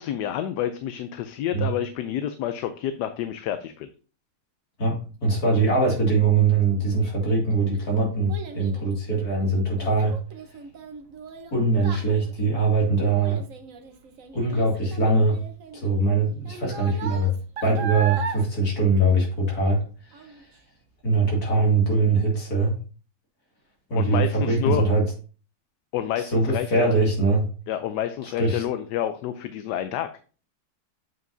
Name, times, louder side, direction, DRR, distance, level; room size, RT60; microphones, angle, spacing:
voice 1, 0.0-3.9 23.9-24.9 25.9-26.9 27.7-30.1, left 10 dB, 85° left, 10 dB, 1.2 m, -29 dB
voice 2, 4.8-10.2 11.5-13.4 14.3-15.4 15.7-17.4 17.6-19.8 20.1-20.3 21.0-22.8 23.9-25.0 26.2-27.5 28.2-28.6, right 3 dB, 65° left, -2 dB, 2.7 m, -22 dB
Child speech kid speaking, 7.1-19.8 20.1-20.6 21.1-21.2, right 6 dB, 60° right, 1.2 m, -38 dB
7.8 x 5.3 x 2.6 m, 0.38 s
omnidirectional pair, 1.8 m